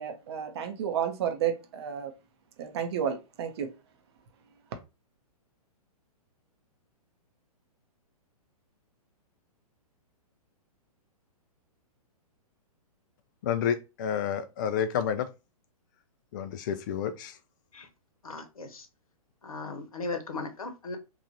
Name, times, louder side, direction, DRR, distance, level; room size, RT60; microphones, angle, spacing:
voice 1, 0.0-2.1 2.6-3.7, right 8 dB, 45° right, 0.7 m, -31 dB
voice 2, 13.4-15.3 16.3-17.4, left 8 dB, 30° left, 0.4 m, -30 dB
voice 3, 18.2-18.9 19.4-21.0, left 3 dB, 65° left, 1.0 m, -37 dB
3.1 x 2.5 x 3.9 m
figure-of-eight pair, 115°, 20 cm